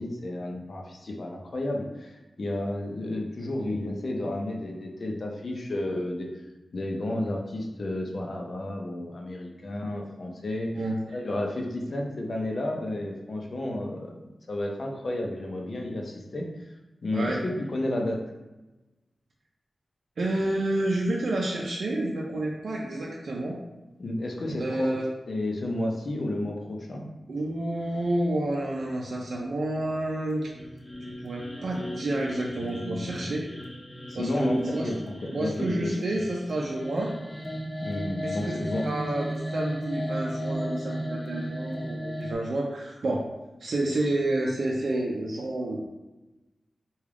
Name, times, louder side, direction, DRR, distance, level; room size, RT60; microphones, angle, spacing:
voice 1, 0.0-6.3 6.7-10.7 11.1-14.2 14.5-16.7 17.0-18.2 24.0-24.9 25.3-27.0 32.6-33.3 34.1-36.2 37.8-38.9, left 1 dB, 60° left, 1 dB, 0.6 m, -32 dB
voice 2, 17.1-17.4 20.2-23.6 24.6-25.1 27.3-30.5 31.2-33.5 34.1-34.9 35.3-37.1 38.2-38.6 38.8-43.3 43.6-45.8, right 1 dB, 80° right, -3 dB, 0.5 m, -29 dB
sound 1, 30.4-42.3, equal, 20° left, 0.6 m, -35 dB
3.4 x 2.3 x 3.6 m, 1.1 s
wide cardioid pair, 90°, 0 cm